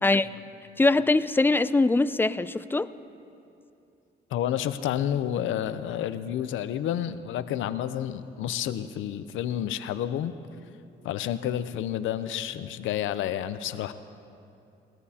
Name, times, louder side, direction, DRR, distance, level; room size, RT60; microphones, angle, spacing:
voice 1, 0.8-2.9, left 2 dB, 10° left, 15 dB, 0.3 m, -22 dB
voice 2, 4.3-10.3 11.0-13.9, left 10 dB, 80° left, 12 dB, 0.6 m, -30 dB
20.0 x 18.0 x 2.8 m, 2.7 s
cardioid pair, 90°, 20 cm